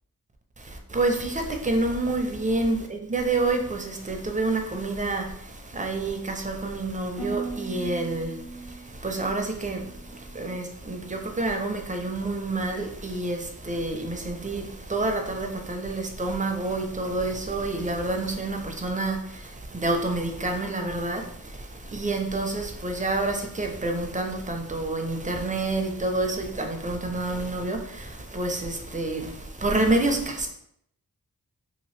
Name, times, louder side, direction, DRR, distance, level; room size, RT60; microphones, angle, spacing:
voice 1, 0.6-30.5, right 2 dB, 20° right, 4 dB, 0.5 m, -28 dB
Harp, 7.2-11.3 11.6-12.1 12.6-13.0, right 3 dB, 70° left, 0.9 m, -40 dB
2.8 x 2.5 x 3.1 m, 0.71 s
wide cardioid pair, 55°, 37 cm